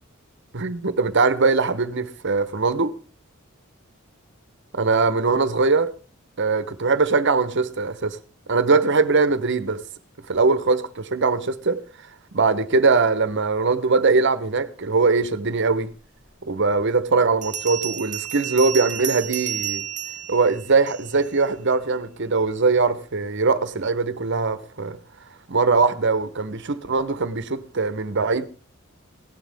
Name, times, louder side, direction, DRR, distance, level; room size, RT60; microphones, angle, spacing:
voice 1, 0.5-3.0 4.7-5.9 6.4-8.2 8.5-9.8 10.3-11.8 12.3-15.9 16.4-19.8 20.3-25.0 25.5-28.5, right 4 dB, 60° right, 1.0 m, -21 dB
Bell, 16.2-16.3 17.4-21.3, right 10 dB, 40° right, 1.2 m, -31 dB
17.5 x 11.5 x 3.5 m
head